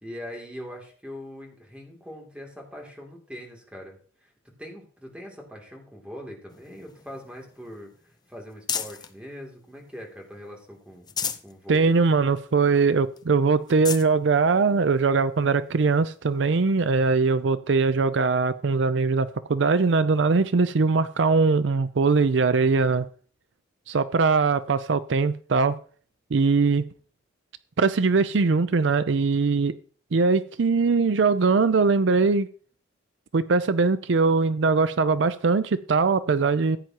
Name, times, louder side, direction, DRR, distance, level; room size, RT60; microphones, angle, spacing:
voice 1, 0.0-4.3 4.6-7.9 8.3-11.1 11.4-12.0, equal, 5° right, 2.8 m, -41 dB
sound 1, 6.5-9.2 9.7-10.5 10.9-11.5 12.0-12.1 12.4-12.5 13.2-13.3 13.6-14.1 14.9-15.0 16.8-16.9, left 7 dB, 20° left, 0.7 m, -35 dB
voice 2, 11.7-23.1 23.9-25.8 26.3-26.9 27.8-29.8 30.1-32.5 33.3-36.8, right 4 dB, 70° right, 0.5 m, -21 dB
15.0 x 9.3 x 2.9 m
head